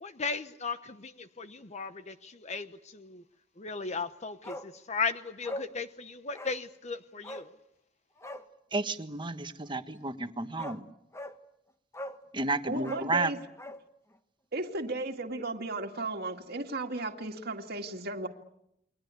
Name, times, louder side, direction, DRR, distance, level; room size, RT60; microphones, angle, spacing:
voice 1, 0.0-3.2 3.6-7.5, left 4 dB, 35° left, 10 dB, 1.0 m, -36 dB
Bark, 4.4-4.7 5.0-5.1 5.4-5.7 6.3-6.6 7.2-7.5 8.2-8.5 10.1-10.2 10.6-10.8 11.1-11.4 11.9-12.2 12.8-13.8 14.1-14.2, left 1 dB, 15° left, 1.6 m, -41 dB
voice 2, 8.7-10.8 12.3-13.3, right 2 dB, 25° right, 9 dB, 1.5 m, -31 dB
voice 3, 12.6-13.4 14.5-18.3, right 2 dB, 55° right, 3 dB, 2.1 m, -35 dB
29.5 x 23.0 x 8.3 m, 0.80 s
head